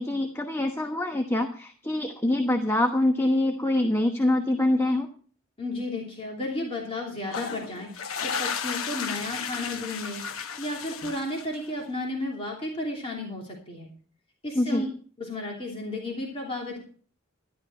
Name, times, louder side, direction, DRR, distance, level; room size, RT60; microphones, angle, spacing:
voice 1, 0.0-5.1 14.5-14.9, left 1 dB, 10° left, 4 dB, 1.1 m, -25 dB
voice 2, 5.6-7.9 8.2-10.2 10.6-13.9 14.4-14.9 15.2-16.8, left 2 dB, 25° left, -2 dB, 2.9 m, -33 dB
sound 1, 7.2-11.8, left 6 dB, 85° left, 1.0 m, -34 dB
13.0 x 11.5 x 4.4 m, 0.43 s
head